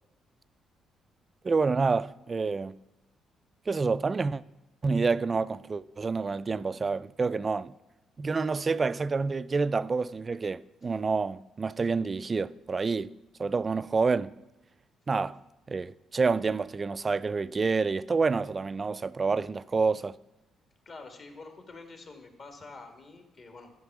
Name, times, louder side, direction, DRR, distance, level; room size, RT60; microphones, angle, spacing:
voice 1, 1.4-2.8 3.7-4.4 4.8-7.7 8.2-13.1 13.4-14.3 15.1-15.4 15.7-20.2, right 4 dB, 30° right, 0.3 m, -28 dB
voice 2, 20.8-23.7, left 3 dB, 45° left, 1.8 m, -47 dB
13.0 x 5.5 x 6.0 m
cardioid pair, 90°, 0 cm